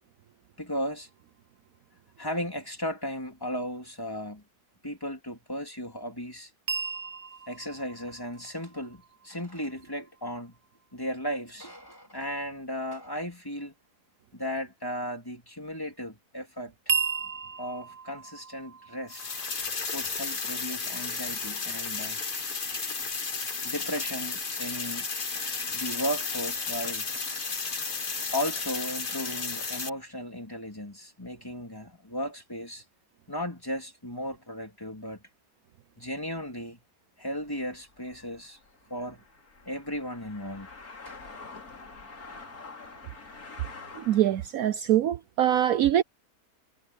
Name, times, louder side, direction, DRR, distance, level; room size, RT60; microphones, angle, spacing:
voice 1, 0.6-1.1 2.2-4.4 4.8-6.5 7.5-10.6 10.9-13.7 14.3-16.9 17.6-19.2 19.9-22.2 23.6-25.1 25.7-27.1 28.3-32.8 33.3-35.2 36.0-36.8 37.2-38.6 38.9-39.2 39.6-40.7 41.0-41.2, equal, 15° left, 3.3 m, -35 dB
sound 1, 6.7-10.7 16.9-19.6, right 6 dB, 45° right, 0.4 m, -35 dB
sound 2, 19.1-29.9, left 4 dB, 35° left, 1.5 m, -33 dB
sound 3, 37.4-44.6, left 4 dB, 70° left, 3.4 m, -47 dB
voice 2, 44.1-46.0, right 11 dB, 70° right, 1.1 m, -23 dB
omnidirectional pair, 1.7 m